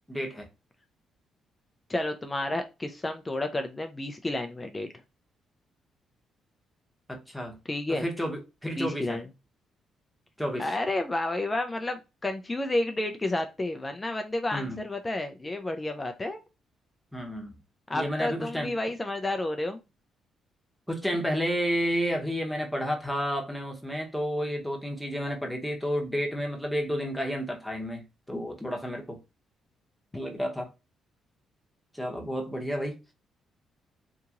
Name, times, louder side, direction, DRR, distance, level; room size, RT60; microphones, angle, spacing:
voice 1, 0.1-0.5 7.1-7.6 7.9-9.2 10.4-10.7 14.5-14.8 17.1-17.6 17.9-18.7 20.9-29.2 30.1-30.7 31.9-33.0, equal, ahead, 0.9 m, -31 dB
voice 2, 1.9-4.9 7.7-8.1 8.8-9.3 10.6-16.4 17.9-19.8, left 2 dB, 20° left, 0.4 m, -31 dB
2.8 x 2.7 x 2.4 m
cardioid pair, 90°, 0 cm